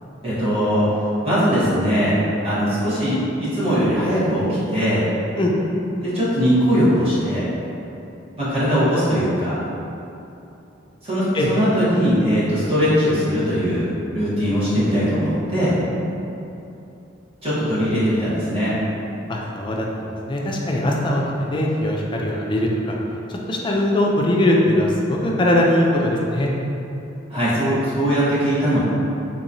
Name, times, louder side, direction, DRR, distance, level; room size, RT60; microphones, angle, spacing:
voice 1, 0.2-0.9 1.2-2.2 2.4-5.0 6.0-7.4 8.4-9.6 11.0-13.8 14.1-15.7 17.4-18.7 27.3-28.8, equal, 30° right, -12 dB, 1.2 m, -20 dB
voice 2, 19.3-23.0 23.3-26.5, left 1 dB, 25° left, -2 dB, 0.4 m, -21 dB
3.7 x 3.0 x 2.6 m, 2.8 s
head